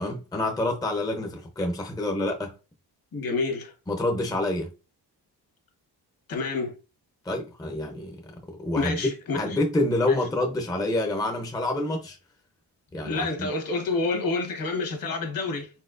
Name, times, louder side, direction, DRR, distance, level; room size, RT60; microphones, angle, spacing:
voice 1, 0.0-2.5 3.9-4.7 7.2-8.2 8.5-9.0 9.3-12.2 12.9-13.5, left 1 dB, 10° left, 0.6 m, -27 dB
voice 2, 3.1-3.7 6.3-6.7 8.7-9.6 10.1-10.2 13.0-15.7, left 3 dB, 55° left, 1.4 m, -28 dB
4.3 x 4.1 x 2.5 m
wide cardioid pair, 145°, 41 cm